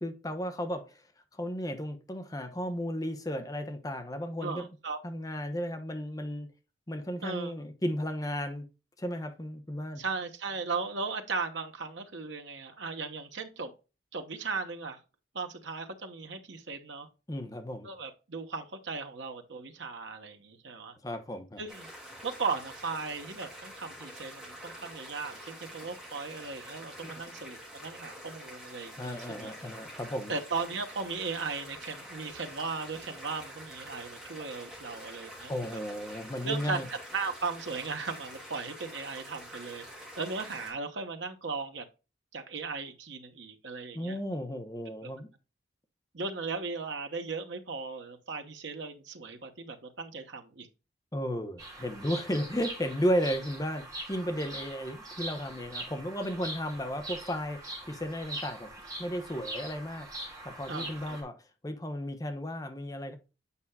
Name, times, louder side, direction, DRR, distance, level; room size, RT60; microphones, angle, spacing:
voice 1, 0.0-1.0 1.3-4.7 5.0-6.5 6.9-8.7 9.0-10.0 17.3-17.9 21.0-21.6 27.0-27.1 29.0-30.3 35.5-36.9 43.9-45.3 51.1-57.6 57.9-58.7 59.0-60.1 60.4-61.4 61.6-63.2, equal, 20° left, 0.8 m, -34 dB
voice 2, 4.4-5.0 7.2-7.5 10.0-13.7 14.1-15.0 15.3-17.1 17.8-20.9 21.6-21.9 22.2-29.5 30.3-35.8 36.4-36.8 37.1-39.9 40.2-41.8 42.3-44.2 45.0-45.1 46.1-50.7 60.7-61.2, right 4 dB, 90° right, 1.0 m, -37 dB
sound 1, 21.7-40.7, equal, 5° right, 2.8 m, -47 dB
Bird vocalization bird call bird song, 51.6-61.2, right 1 dB, 20° right, 3.0 m, -42 dB
8.3 x 5.5 x 2.3 m
head